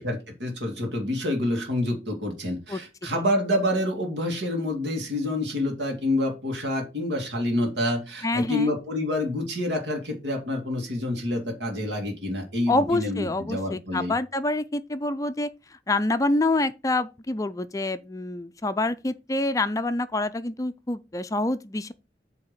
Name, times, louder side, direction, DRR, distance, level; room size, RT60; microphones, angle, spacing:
voice 1, 0.0-14.1, left 1 dB, 80° right, 2.2 m, -27 dB
voice 2, 8.2-8.7 12.7-21.9, left 2 dB, 20° left, 0.4 m, -27 dB
8.5 x 3.5 x 6.6 m
head